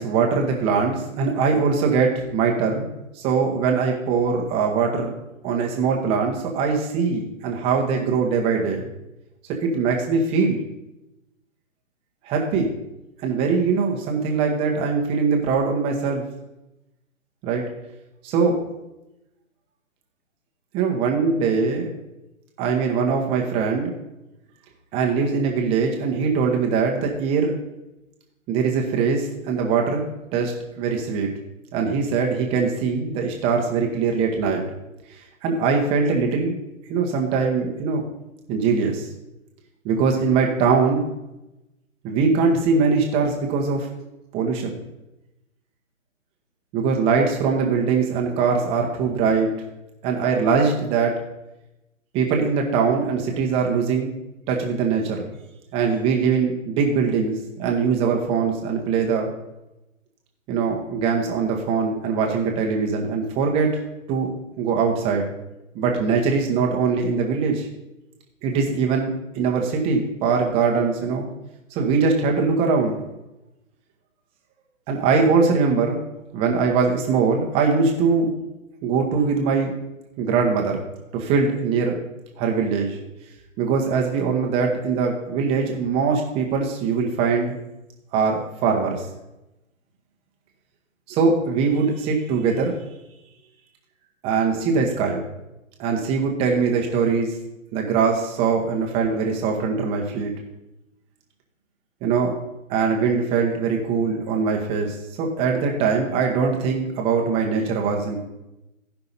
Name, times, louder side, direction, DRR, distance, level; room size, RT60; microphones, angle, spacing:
voice 1, 0.0-2.9 3.1-5.1 5.4-8.8 9.6-10.6 12.2-12.7 13.2-16.2 17.4-17.6 18.2-18.6 20.7-21.9 22.6-23.9 24.9-27.6 28.5-30.0 30.3-31.3 31.7-34.6 35.1-36.6 36.9-38.1 38.5-39.1 39.8-41.0 42.0-43.9 44.3-44.8 46.7-49.5 50.0-51.2 52.1-54.1 54.5-55.3 55.7-59.3 60.5-63.7 64.1-65.3 65.7-67.7 68.4-71.3 71.7-73.0 74.9-76.0 76.3-78.3 78.8-79.7 80.2-80.8 81.1-82.0 82.4-83.0 83.6-87.6 88.1-89.1 91.1-92.8 94.2-95.2 95.8-97.3 97.7-100.3 102.0-102.4 102.7-108.2, right 5 dB, 15° right, 1 dB, 1.1 m, -22 dB
15.0 x 5.8 x 4.0 m, 0.94 s
figure-of-eight pair, 140°, 41 cm